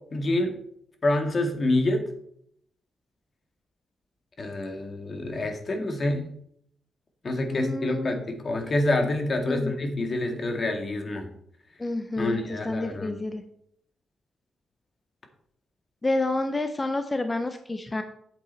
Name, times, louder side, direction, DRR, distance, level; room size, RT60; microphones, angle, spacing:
voice 1, 0.1-0.6 1.0-2.0 4.4-6.3 7.2-11.3 12.2-13.1, left 2 dB, 45° left, 4 dB, 2.1 m, -27 dB
voice 2, 7.5-8.1 9.5-9.7 11.8-13.4 16.0-18.0, left 2 dB, 25° left, 7 dB, 0.8 m, -29 dB
8.6 x 7.9 x 4.2 m, 0.70 s
cardioid pair, 75°, 0 cm